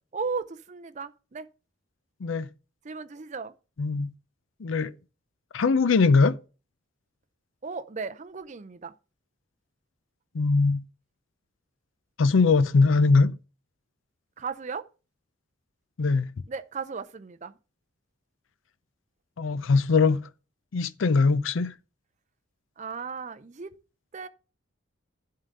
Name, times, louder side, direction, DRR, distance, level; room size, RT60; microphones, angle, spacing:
voice 1, 0.1-1.5 2.8-3.5 7.6-8.9 14.4-14.9 16.5-17.6 22.8-23.7 24.1-24.3, right 5 dB, 35° right, 0.5 m, -35 dB
voice 2, 3.8-4.1 4.6-4.9 5.5-6.4 10.3-10.8 12.2-13.4 16.0-16.3 19.4-20.2 20.7-21.7, left 4 dB, 70° left, 0.5 m, -21 dB
11.0 x 3.8 x 6.4 m
head